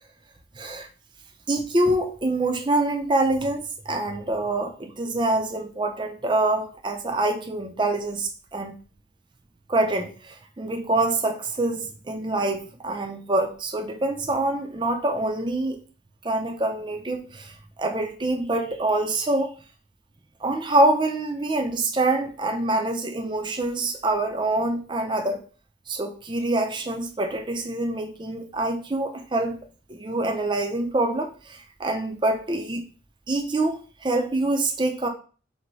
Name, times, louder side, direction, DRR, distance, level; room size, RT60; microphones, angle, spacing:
voice 1, 0.6-0.9 1.5-8.7 9.7-15.8 16.2-19.5 20.4-25.4 25.9-29.6 29.9-32.8 33.3-35.1, right 2 dB, 25° right, 4 dB, 0.5 m, -25 dB
4.5 x 2.1 x 4.0 m, 0.38 s
head